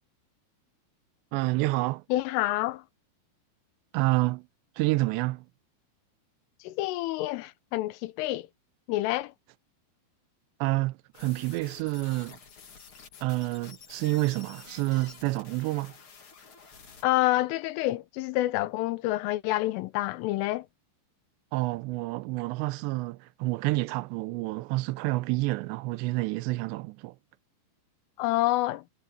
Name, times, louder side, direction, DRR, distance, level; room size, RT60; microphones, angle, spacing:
voice 1, 1.3-2.0 3.9-4.5 4.8-5.5 10.6-12.4 13.2-15.9 21.5-27.2, right 21 dB, 80° right, 2.6 m, -28 dB
voice 2, 2.1-2.8 6.7-8.5 8.9-9.3 17.0-20.7 28.2-28.8, left 17 dB, 85° left, 3.5 m, -28 dB
sound 1, 11.1-17.0, left 6 dB, 45° left, 1.9 m, -50 dB
omnidirectional pair, 5.6 m